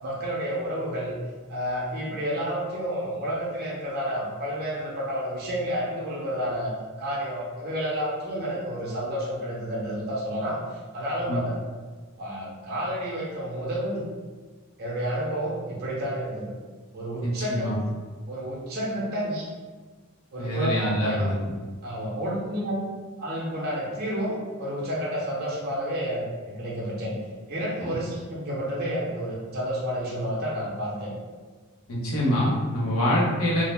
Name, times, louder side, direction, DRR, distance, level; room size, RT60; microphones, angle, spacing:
voice 1, 0.0-1.2 1.5-11.6 12.2-14.0 14.8-16.5 16.9-17.9 18.3-19.5 20.3-21.3 21.8-22.8 23.2-27.1 27.5-31.1, equal, 45° right, -5 dB, 0.6 m, -30 dB
voice 2, 17.2-17.8 20.4-21.4 27.8-27.9 31.9-33.6, equal, 85° left, -6 dB, 0.8 m, -25 dB
2.6 x 2.0 x 3.2 m, 1.4 s
head